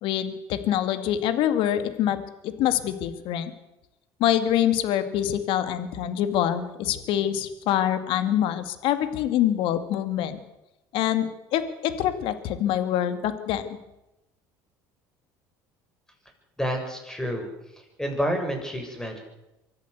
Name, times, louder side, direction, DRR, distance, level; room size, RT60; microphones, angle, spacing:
voice 1, 0.0-2.2 2.4-3.5 4.2-10.4 10.9-13.6, left 11 dB, 65° left, 11 dB, 2.3 m, -25 dB
voice 2, 16.6-17.5 18.0-19.2, equal, 5° left, 4 dB, 7.1 m, -28 dB
24.0 x 14.0 x 8.1 m, 0.92 s
supercardioid pair, 80°, 9 cm